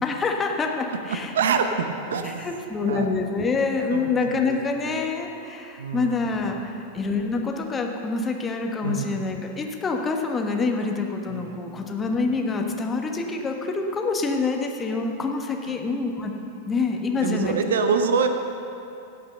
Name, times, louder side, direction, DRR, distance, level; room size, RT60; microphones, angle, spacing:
voice 1, 0.0-1.3 2.2-16.3 16.7-17.6, left 4 dB, 20° left, 2 dB, 1.2 m, -26 dB
voice 2, 1.3-2.5 2.9-3.1 3.9-4.6 5.8-6.4 6.6-6.8 8.8-9.2 11.3-11.8 15.7-15.8 17.2-18.3, right 6 dB, 65° right, 7 dB, 0.8 m, -26 dB
16.5 x 6.0 x 6.7 m, 2.7 s
figure-of-eight pair, 90°, 0 cm